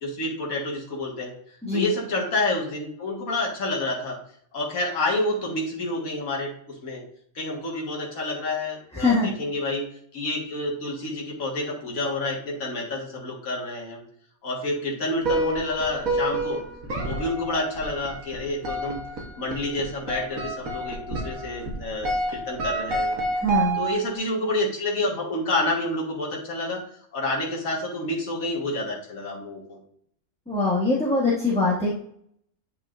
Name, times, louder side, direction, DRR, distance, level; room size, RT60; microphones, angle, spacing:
voice 1, 0.0-1.3 1.7-4.2 4.5-7.0 7.4-9.8 10.1-14.0 14.4-16.6 17.0-19.0 19.4-23.1 23.8-26.8 27.1-29.8, left 2 dB, 75° left, -2 dB, 2.0 m, -28 dB
voice 2, 1.6-1.9 8.9-9.3 23.3-23.8 30.5-31.9, left 3 dB, 5° left, -6 dB, 1.1 m, -23 dB
sound 1, 15.2-24.2, right 2 dB, 80° right, 1.7 m, -29 dB
9.1 x 5.4 x 2.5 m, 0.65 s
omnidirectional pair, 1.4 m